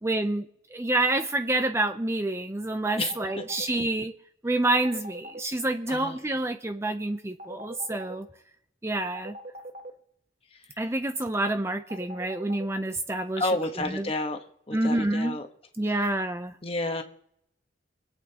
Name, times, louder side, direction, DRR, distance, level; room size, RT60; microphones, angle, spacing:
voice 1, 0.0-4.1 4.4-8.3 8.8-9.4 10.8-13.5 13.8-14.1 14.7-15.4 15.8-16.6, right 2 dB, 15° right, 8 dB, 0.5 m, -28 dB
sound 1, 2.9-3.7 4.6-5.4 7.4-8.2 9.1-9.9 11.9-12.7, right 1 dB, 40° right, 1.1 m, -40 dB
voice 2, 13.4-14.4 14.7-15.4 16.6-17.0, left 2 dB, 30° left, 5 dB, 1.1 m, -30 dB
25.0 x 8.6 x 2.9 m, 0.71 s
head